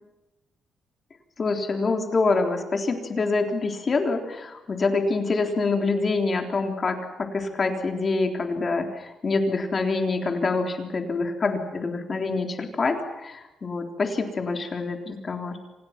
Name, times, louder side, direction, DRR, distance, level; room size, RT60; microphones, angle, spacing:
voice 1, 1.4-15.6, left 3 dB, 30° left, 4 dB, 3.5 m, -26 dB
29.5 x 27.5 x 6.0 m, 0.97 s
cardioid pair, 175°, 0 cm